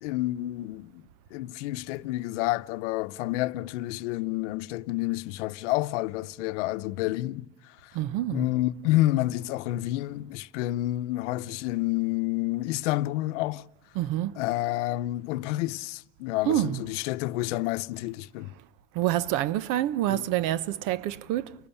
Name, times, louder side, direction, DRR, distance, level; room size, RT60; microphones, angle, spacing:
voice 1, 0.0-1.0 1.3-8.0 8.3-13.7 14.4-18.5 20.1-20.2, left 17 dB, 90° left, 0.8 m, -29 dB
voice 2, 7.9-8.5 13.9-14.3 16.5-16.8 18.9-21.5, right 13 dB, 65° right, 1.0 m, -27 dB
29.5 x 19.5 x 7.1 m
supercardioid pair, 125°, 35 cm